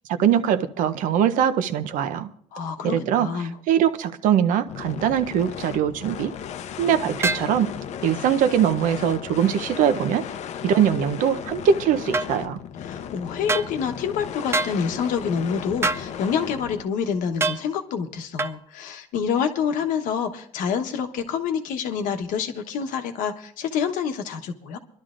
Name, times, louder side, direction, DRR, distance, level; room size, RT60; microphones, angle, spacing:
voice 1, 0.2-2.3 2.8-3.3 3.7-6.3 6.8-7.7 8.0-10.2 10.6-12.6, right 9 dB, 80° right, 11 dB, 0.7 m, -22 dB
voice 2, 2.5-3.6 12.8-24.8, left 7 dB, 90° left, 6 dB, 1.1 m, -27 dB
sound 1, 4.7-16.9, left 8 dB, 60° left, 0.6 m, -35 dB
sound 2, 7.2-7.5 12.1-12.3 13.5-13.7 14.5-14.8 15.8-16.1 17.4-17.6 18.4-18.6, right 3 dB, 20° right, 0.4 m, -24 dB
25.5 x 11.5 x 2.5 m, 0.65 s
cardioid pair, 120°, 13 cm